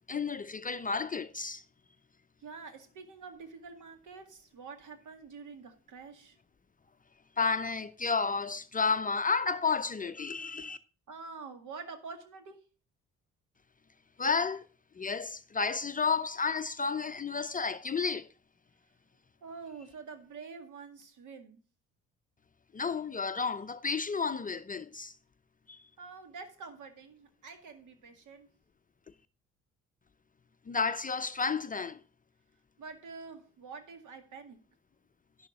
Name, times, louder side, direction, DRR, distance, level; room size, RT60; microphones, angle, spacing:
voice 1, 0.1-1.6 7.4-10.8 14.2-14.6 15.0-18.3 22.7-25.1 25.7-25.8 30.7-32.0, left 5 dB, 20° left, 0.7 m, -31 dB
voice 2, 2.4-6.4 11.1-12.6 19.4-21.6 26.0-28.5 32.8-34.6, right 4 dB, 55° right, 2.1 m, -47 dB
11.5 x 11.5 x 2.5 m
hypercardioid pair, 50°, 37 cm